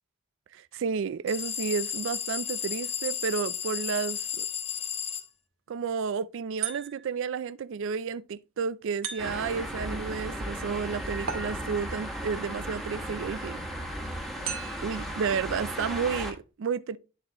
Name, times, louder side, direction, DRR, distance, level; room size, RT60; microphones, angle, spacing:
voice 1, 0.5-4.5 5.7-13.6 14.8-17.0, right 6 dB, 65° right, 0.4 m, -31 dB
sound 1, 1.3-5.3, left 9 dB, 30° left, 0.6 m, -33 dB
sound 2, 6.6-7.3 9.0-9.7 11.3-12.0 14.4-15.1, right 7 dB, 80° right, 1.9 m, -37 dB
sound 3, 9.2-16.3, equal, ahead, 1.5 m, -35 dB
10.5 x 4.3 x 2.9 m
head